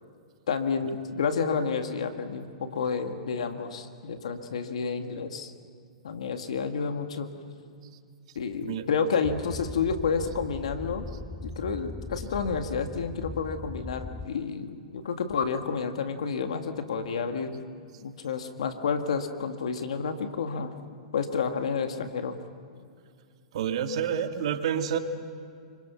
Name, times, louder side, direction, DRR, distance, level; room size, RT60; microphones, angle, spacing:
voice 1, 0.5-5.5 6.0-7.3 8.4-11.1 11.4-17.6 18.0-20.7 21.1-22.4, left 5 dB, 75° left, 6 dB, 2.0 m, -30 dB
sound 1, 9.2-14.3, left 2 dB, 5° left, 0.5 m, -40 dB
voice 2, 23.5-25.0, right 8 dB, 65° right, 7 dB, 1.8 m, -28 dB
26.5 x 24.5 x 5.8 m, 2.3 s
hypercardioid pair, 115°, 3 cm